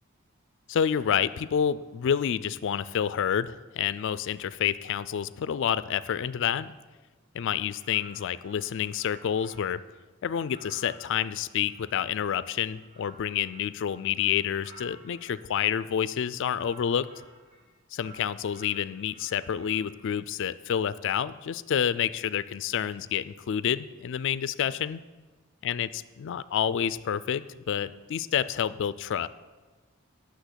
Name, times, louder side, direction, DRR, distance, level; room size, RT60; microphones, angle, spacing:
voice 1, 0.7-6.7 7.3-9.8 10.2-17.1 17.9-25.0 25.6-25.9 26.2-29.3, left 8 dB, 60° left, 16 dB, 0.4 m, -28 dB
sound 1, 7.7-9.9 10.3-15.4 16.1-17.7 18.0-20.0, right 2 dB, 65° right, 3.2 m, -54 dB
10.5 x 6.3 x 8.0 m, 1.3 s
head